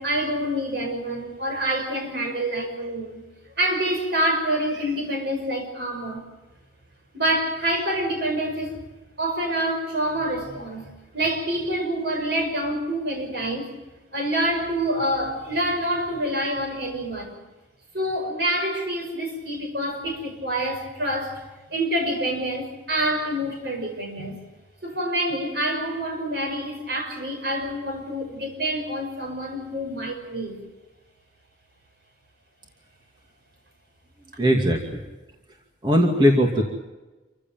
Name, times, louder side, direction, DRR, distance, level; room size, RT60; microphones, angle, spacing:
voice 1, 0.0-3.2 3.6-6.2 7.1-8.7 9.2-13.7 14.1-17.4 17.9-21.4 21.7-24.4 24.8-30.6, right 1 dB, 55° right, 3 dB, 5.9 m, -27 dB
voice 2, 34.4-35.0 35.8-36.6, equal, 25° right, 1 dB, 2.5 m, -19 dB
27.5 x 15.5 x 9.2 m, 1.2 s
head